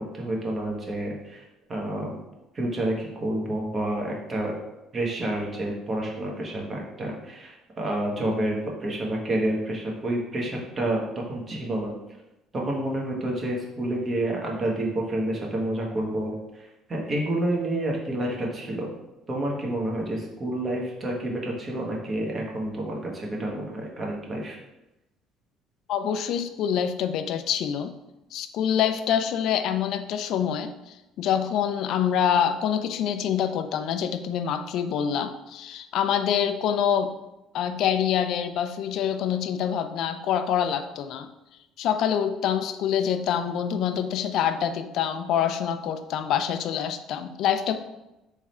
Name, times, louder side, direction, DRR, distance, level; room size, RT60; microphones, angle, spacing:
voice 1, 0.0-1.4 1.7-2.2 2.5-4.5 4.9-11.9 12.5-18.9 19.3-24.6, right 1 dB, 35° right, -1 dB, 1.2 m, -29 dB
voice 2, 25.9-27.9 28.3-37.1 37.5-41.3 41.8-47.8, left 8 dB, 65° left, 9 dB, 0.4 m, -26 dB
3.6 x 3.2 x 4.3 m, 0.96 s
cardioid pair, 105°, 0 cm